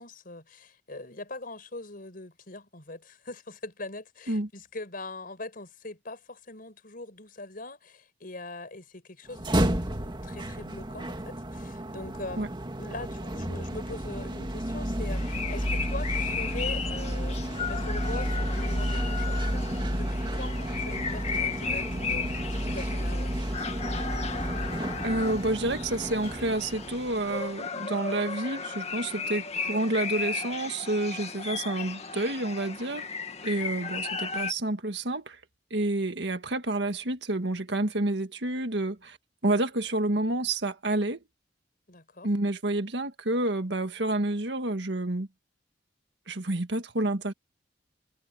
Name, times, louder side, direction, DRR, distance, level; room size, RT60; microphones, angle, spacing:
voice 1, 0.0-12.5 12.8-23.3 41.9-42.3, left 2 dB, 55° left, 5.6 m, -42 dB
sound 1, 9.3-27.4, right 1 dB, 25° right, 2.2 m, -31 dB
sound 2, 15.1-34.5, left 5 dB, 40° left, 2.1 m, -35 dB
voice 2, 25.0-33.0 33.4-35.4 35.7-39.2 39.4-41.2 42.2-45.3 46.3-47.3, right 2 dB, 70° right, 1.9 m, -29 dB
head